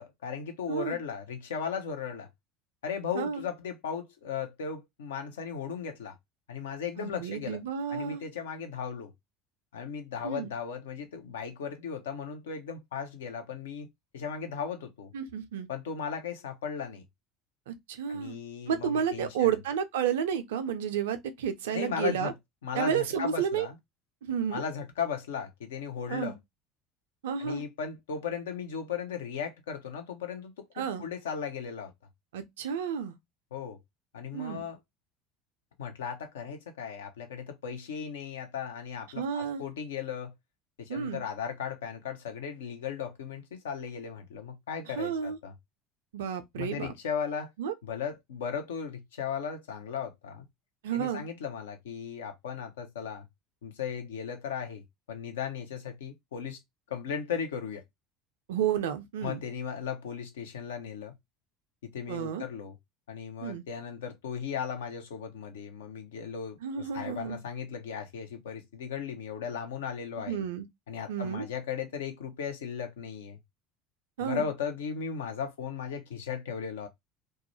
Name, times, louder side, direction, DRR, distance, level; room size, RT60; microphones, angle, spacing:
voice 1, 0.0-2.3 2.8-6.2 6.5-7.6 7.9-9.1 9.7-13.9 14.1-15.1 15.7-17.0 18.1-19.5 21.7-22.3 22.6-23.8 24.5-26.4 27.4-31.9 33.5-33.8 34.1-34.8 35.8-40.3 40.8-45.5 46.6-47.5 47.8-50.5 50.9-53.3 53.6-56.6 56.9-57.8 59.2-61.1 61.8-62.8 63.1-70.4 70.9-73.4 74.2-76.9, left 7 dB, 70° left, 0.5 m, -36 dB
voice 2, 7.0-8.2 10.2-10.5 15.1-15.7 17.7-18.4 18.7-22.3 22.7-23.7 24.2-24.6 26.1-26.3 27.2-27.6 30.8-31.0 32.3-33.1 34.3-34.6 39.2-39.6 40.9-41.2 45.0-45.4 46.1-46.9 47.6-47.7 50.8-51.2 58.5-59.4 62.1-62.4 63.4-63.6 66.6-67.4 70.3-70.7 71.1-71.5 74.2-74.4, right 8 dB, 65° right, 0.4 m, -31 dB
2.3 x 2.1 x 2.9 m
figure-of-eight pair, 70°, 0 cm